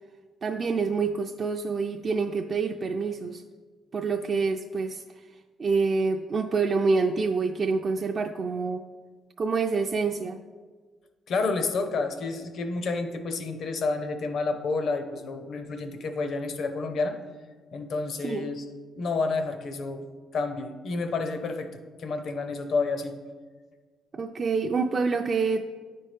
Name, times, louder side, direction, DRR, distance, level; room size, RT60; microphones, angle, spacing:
voice 1, 0.4-3.4 3.9-5.3 5.6-8.8 9.4-10.4 18.2-18.5 24.1-25.6, right 4 dB, 45° right, 4 dB, 0.3 m, -27 dB
voice 2, 11.3-17.2 17.7-18.6 19.0-20.0 20.3-23.1, left 3 dB, 65° left, 7 dB, 0.7 m, -29 dB
9.8 x 4.3 x 3.2 m, 1.4 s
cardioid pair, 90°, 0 cm